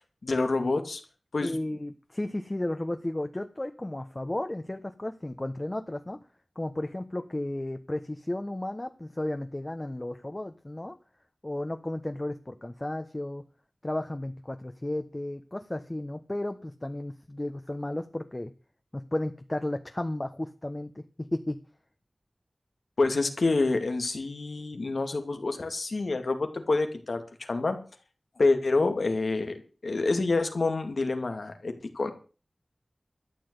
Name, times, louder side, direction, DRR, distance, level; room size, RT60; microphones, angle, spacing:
voice 1, 0.2-1.0 1.3-1.6 23.0-27.8 28.4-32.1, left 3 dB, 80° left, 7 dB, 2.3 m, -27 dB
voice 2, 1.4-6.2 6.5-11.0 11.4-13.4 13.8-18.5 18.9-21.0 21.3-21.6, left 1 dB, 30° left, 7 dB, 1.2 m, -33 dB
13.0 x 7.7 x 8.1 m, 0.37 s
wide cardioid pair, 45°, 0 cm